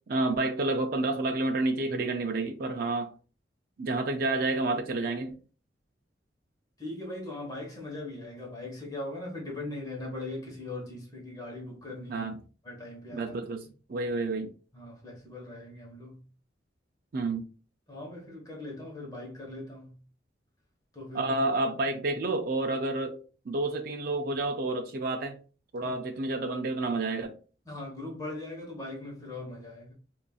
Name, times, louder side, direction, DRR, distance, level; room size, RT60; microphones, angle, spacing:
voice 1, 0.1-3.1 3.8-5.3 12.1-12.4 13.1-13.6 13.9-14.5 17.1-17.5 21.1-23.2 23.5-25.4 25.7-27.3, right 2 dB, 55° right, 0.5 m, -29 dB
voice 2, 6.8-12.3 12.6-13.3 14.7-16.2 17.9-20.0 20.9-21.3 25.8-25.9 27.6-29.9, left 2 dB, 20° left, 1.1 m, -40 dB
5.3 x 2.5 x 2.3 m
head